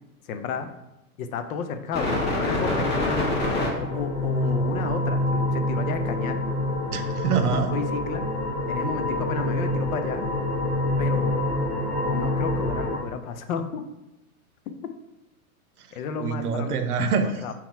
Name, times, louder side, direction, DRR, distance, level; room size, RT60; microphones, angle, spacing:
voice 1, 0.3-0.7 1.2-3.3 3.8-6.4 7.5-8.2 8.7-10.3 11.0-11.3 12.1-13.8 15.9-16.7 17.4-17.5, left 6 dB, 65° left, 8 dB, 0.7 m, -32 dB
sound 1, 1.9-13.0, left 1 dB, 25° left, 1.4 m, -26 dB
voice 2, 6.9-7.7 16.2-17.4, right 5 dB, 90° right, 8 dB, 0.7 m, -25 dB
3.9 x 3.0 x 4.5 m, 0.95 s
hypercardioid pair, 120°, 44 cm